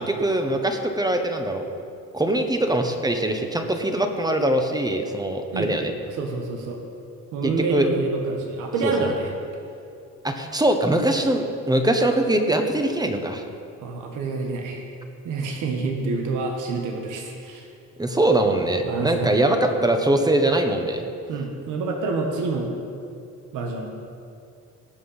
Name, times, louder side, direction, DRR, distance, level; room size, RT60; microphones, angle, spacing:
voice 1, 0.0-1.6 2.1-5.9 7.4-7.9 8.8-8.9 10.2-13.4 18.0-21.0, right 1 dB, 15° right, 5 dB, 1.3 m, -22 dB
voice 2, 6.1-6.8 7.3-9.3 13.8-14.8 15.2-17.7 18.8-19.3 21.3-22.7 23.5-23.9, right 3 dB, 90° right, 2 dB, 1.5 m, -27 dB
18.0 x 6.1 x 5.6 m, 2.5 s
cardioid pair, 90°, 30 cm